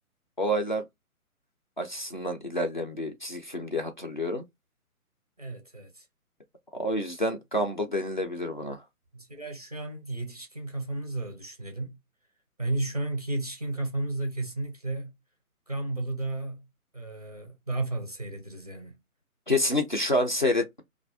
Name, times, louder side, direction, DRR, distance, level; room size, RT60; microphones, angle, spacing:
voice 1, 0.4-0.9 1.8-4.4 6.8-8.8 19.5-20.8, left 1 dB, 35° left, 0.4 m, -28 dB
voice 2, 5.4-6.1 9.1-12.0 12.6-15.1 15.7-16.6 16.9-19.0, right 2 dB, 30° right, 0.4 m, -33 dB
2.4 x 2.2 x 3.3 m
figure-of-eight pair, 155°, 45 cm